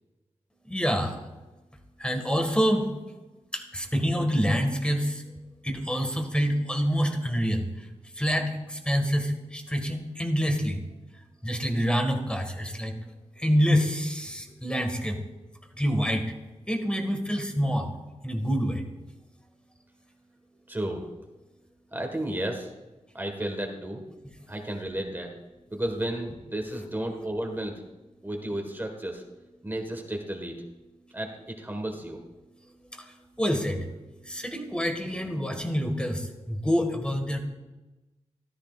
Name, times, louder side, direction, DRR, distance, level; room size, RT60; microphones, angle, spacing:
voice 1, 0.7-1.2 2.0-2.9 3.5-5.2 5.6-7.9 8.2-10.8 11.4-12.9 13.4-15.2 15.8-16.2 16.7-17.9 18.2-18.8 33.0-33.1 33.4-33.9 34.3-37.4, equal, 10° left, 4 dB, 1.8 m, -26 dB
voice 2, 20.7-21.0 21.9-22.7 23.1-24.0 24.5-25.3 25.7-27.8 28.2-29.2 29.6-30.6 31.1-32.2, right 1 dB, 15° right, 2 dB, 1.6 m, -32 dB
14.0 x 13.0 x 2.5 m, 1.1 s
wide cardioid pair, 90°, 12 cm